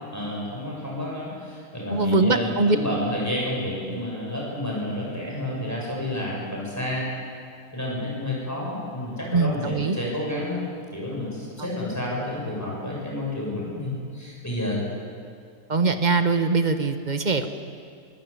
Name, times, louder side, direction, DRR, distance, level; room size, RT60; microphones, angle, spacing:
voice 1, 0.1-7.1 7.7-10.6 10.9-14.8, left 1 dB, 10° left, -4 dB, 7.3 m, -30 dB
voice 2, 1.9-2.8 9.3-10.0 15.7-17.5, right 3 dB, 30° right, 8 dB, 1.2 m, -22 dB
25.0 x 16.5 x 8.7 m, 2.4 s
omnidirectional pair, 1.8 m